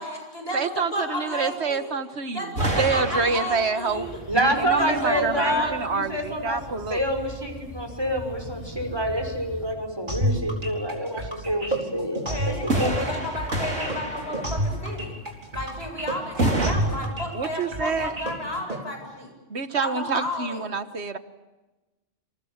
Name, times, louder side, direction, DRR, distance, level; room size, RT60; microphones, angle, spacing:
voice 1, 0.0-0.6 0.9-2.0 2.3-4.1 4.8-5.7 12.3-15.2 15.5-19.3 19.8-20.6, left 1 dB, 55° left, 3 dB, 8.4 m, -32 dB
voice 2, 0.5-4.1 4.6-7.0 17.3-18.2 19.5-21.2, right 5 dB, 60° right, 10 dB, 1.7 m, -27 dB
sound 1, 2.5-4.2 12.7-14.9 16.4-16.7, right 1 dB, 85° right, 4.2 m, -28 dB
sound 2, 3.9-9.7, equal, 25° left, 2.9 m, -41 dB
voice 3, 4.3-13.0, equal, 20° right, 3 dB, 5.8 m, -27 dB
sound 3, 10.1-18.8, right 1 dB, 40° right, 4.6 m, -29 dB
29.5 x 27.5 x 7.4 m, 1.1 s
omnidirectional pair, 1.3 m